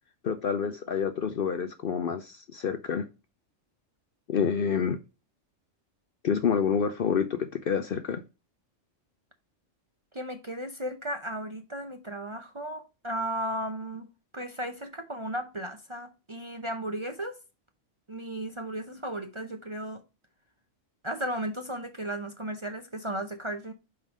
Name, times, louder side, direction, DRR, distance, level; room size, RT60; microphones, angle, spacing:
voice 1, 0.2-3.1 4.3-5.0 6.2-8.2, left 7 dB, 55° left, 0.7 m, -28 dB
voice 2, 10.1-14.1 14.3-17.4 18.1-20.0 21.0-23.7, right 1 dB, 30° right, 0.7 m, -35 dB
5.5 x 4.6 x 4.9 m
omnidirectional pair, 1.3 m